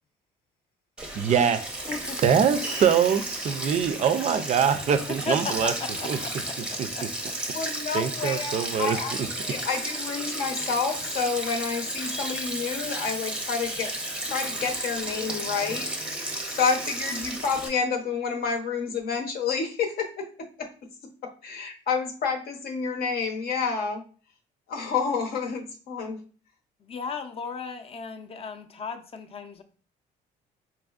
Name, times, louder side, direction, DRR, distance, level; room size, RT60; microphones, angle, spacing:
Sink (filling or washing), 1.0-17.7, right 1 dB, 5° right, 0.6 m, -33 dB
voice 1, 1.2-1.8 2.2-5.7 6.0-6.2 6.8-6.9 7.9-9.0, right 7 dB, 45° right, 10 dB, 0.4 m, -23 dB
voice 2, 5.1-5.5 6.0-6.3 6.9-7.0 26.8-29.6, left 5 dB, 35° left, 8 dB, 0.5 m, -35 dB
voice 3, 7.5-9.1 9.4-13.9 14.2-20.7 21.2-24.0 24.7-26.2, left 5 dB, 65° left, 3 dB, 0.8 m, -29 dB
4.2 x 2.5 x 2.4 m, 0.40 s
cardioid pair, 110°, 17 cm